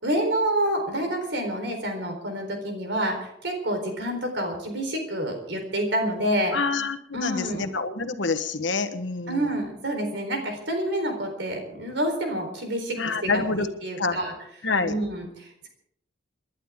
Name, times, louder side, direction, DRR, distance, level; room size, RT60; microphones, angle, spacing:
voice 1, 0.0-6.6 7.1-7.7 9.3-14.3 14.8-15.7, right 1 dB, 65° right, 4 dB, 4.1 m, -28 dB
voice 2, 6.5-9.5 13.0-13.7 14.0-14.2 14.6-14.9, left 4 dB, 70° left, 9 dB, 1.2 m, -27 dB
29.0 x 11.5 x 3.7 m, 0.74 s
head